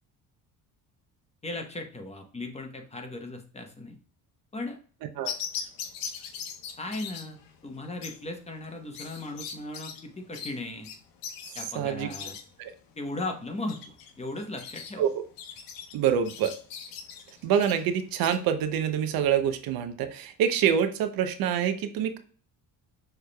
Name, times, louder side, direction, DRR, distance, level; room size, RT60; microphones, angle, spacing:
voice 1, 1.4-4.0 4.5-4.8 6.8-7.4 7.6-10.9 11.5-12.3 13.0-15.1, left 2 dB, 20° left, 3 dB, 1.0 m, -37 dB
sound 1, 5.2-18.4, left 7 dB, 75° left, 0.8 m, -41 dB
voice 2, 11.7-12.1 12.6-12.7 15.0-15.2 15.9-16.5 17.4-22.2, right 8 dB, 80° right, 9 dB, 0.7 m, -26 dB
6.4 x 3.3 x 2.2 m, 0.43 s
cardioid pair, 105°, 35 cm